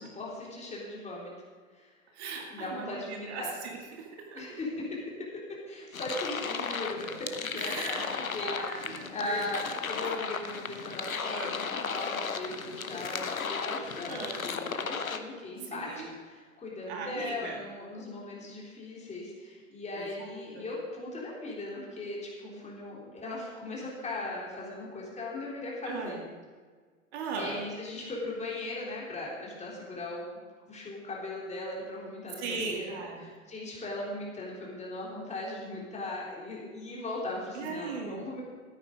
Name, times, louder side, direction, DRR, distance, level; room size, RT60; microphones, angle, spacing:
voice 1, 0.0-1.3 1.7-1.9 2.5-3.6 4.3-5.0 5.7-8.1 8.3-15.9 16.2-26.2 27.3-38.4, left 2 dB, 15° left, -4 dB, 3.5 m, -38 dB
voice 2, 2.1-4.6 7.5-8.0 8.4-9.5 10.0-10.1 11.3-11.6 14.1-14.4 15.6-16.1 16.9-17.6 20.0-20.6 25.8-26.2 27.1-27.7 32.4-33.3 37.5-38.3, right 4 dB, 55° right, 2 dB, 2.0 m, -39 dB
sound 1, 5.9-15.2, left 5 dB, 85° left, 0.9 m, -35 dB
13.5 x 9.2 x 5.1 m, 1.5 s
figure-of-eight pair, 90°, 40 cm